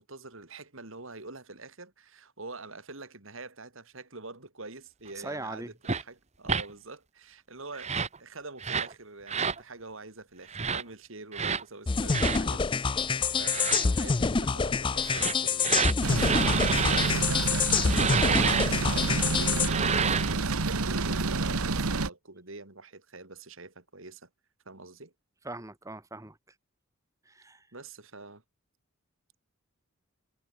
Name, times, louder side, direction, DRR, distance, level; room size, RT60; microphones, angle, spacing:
voice 1, 0.0-7.9 8.2-24.3 24.6-25.1 27.7-28.4, right 3 dB, 65° right, 3.1 m, -45 dB
voice 2, 5.1-5.7 25.4-26.4 27.2-27.7, right 2 dB, 15° right, 1.6 m, -40 dB
sound 1, 5.9-6.0 6.5-6.7 7.7-8.2 8.6-8.9 9.3-9.6 10.5-10.8 11.3-11.6 12.1-12.4 13.4-13.9 15.0-17.1 17.9-18.7 19.6-20.4, right 6 dB, 30° right, 1.4 m, -29 dB
sound 2, 11.9-19.7, left 5 dB, 20° left, 0.4 m, -27 dB
sound 3, 16.0-22.1, right 3 dB, 90° right, 1.3 m, -28 dB
head